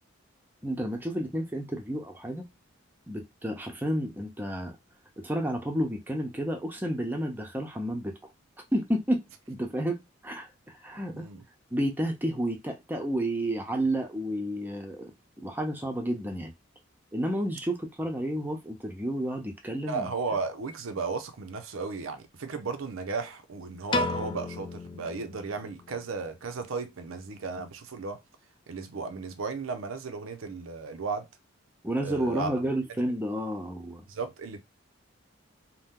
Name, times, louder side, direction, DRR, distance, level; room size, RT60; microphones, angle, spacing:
voice 1, 0.6-2.5 3.1-4.8 5.2-8.1 8.7-10.5 10.8-11.3 11.7-15.1 15.4-16.5 17.1-20.1 31.8-34.0, right 1 dB, 10° right, 0.6 m, -31 dB
voice 2, 11.1-11.4 19.9-28.2 28.7-31.3 32.0-32.5 34.1-34.6, right 4 dB, 90° right, 0.6 m, -35 dB
Piano, 23.9-26.2, left 2 dB, 25° left, 0.3 m, -33 dB
2.7 x 2.1 x 3.5 m
head